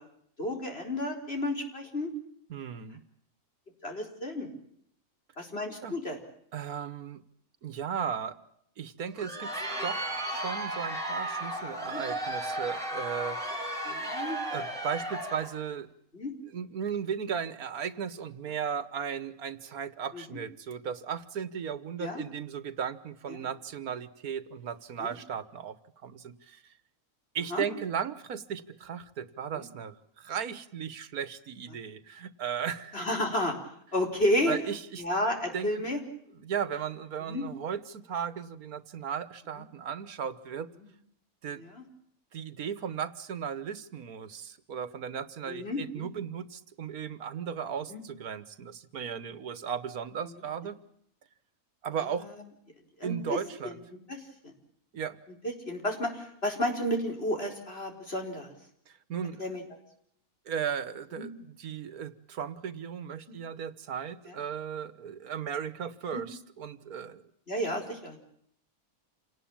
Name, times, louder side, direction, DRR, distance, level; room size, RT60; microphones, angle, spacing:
voice 1, 0.4-2.1 3.8-4.5 5.4-6.2 11.9-12.0 13.8-14.4 16.1-16.3 20.1-20.4 22.0-22.3 23.4-23.5 25.0-25.1 27.5-27.7 29.5-29.7 32.9-33.5 33.9-34.6 35.0-36.0 37.3-37.5 40.8-40.9 41.6-41.8 45.5-46.1 47.9-48.0 50.3-50.4 53.0-53.4 53.6-53.7 54.1-54.5 55.4-58.5 59.4-59.6 61.2-61.3 64.3-64.4 66.1-66.2 67.5-68.2, left 1 dB, 45° left, 3 dB, 4.9 m, -32 dB
voice 2, 2.5-3.0 5.8-5.9 6.5-7.2 7.6-8.4 8.8-9.5 9.8-13.4 14.5-15.9 16.5-25.8 26.0-26.6 27.4-33.0 34.5-35.1 35.5-35.7 36.4-40.7 41.4-41.6 42.3-50.8 51.8-52.3 53.0-53.8 54.9-55.2 58.9-59.4 60.5-67.2, right 7 dB, 85° right, 15 dB, 1.7 m, -36 dB
Crowd, 9.0-15.6, right 1 dB, ahead, 6.8 m, -34 dB
28.0 x 19.0 x 8.8 m, 0.70 s
omnidirectional pair, 1.5 m